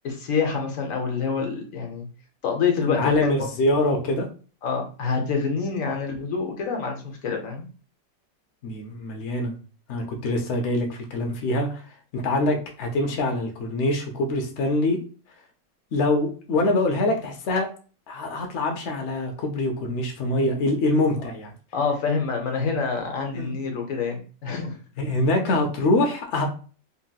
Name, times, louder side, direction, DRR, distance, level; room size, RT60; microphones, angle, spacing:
voice 1, 0.0-2.1 2.4-3.3 4.6-7.6 21.7-24.8, left 5 dB, 60° left, 3 dB, 0.9 m, -26 dB
voice 2, 2.9-4.3 8.6-9.5 9.9-11.8 12.1-15.0 15.9-17.7 18.1-21.5 23.3-23.6 25.0-26.5, left 2 dB, 80° left, 2 dB, 0.6 m, -24 dB
2.9 x 2.9 x 2.2 m, 0.38 s
omnidirectional pair, 1.9 m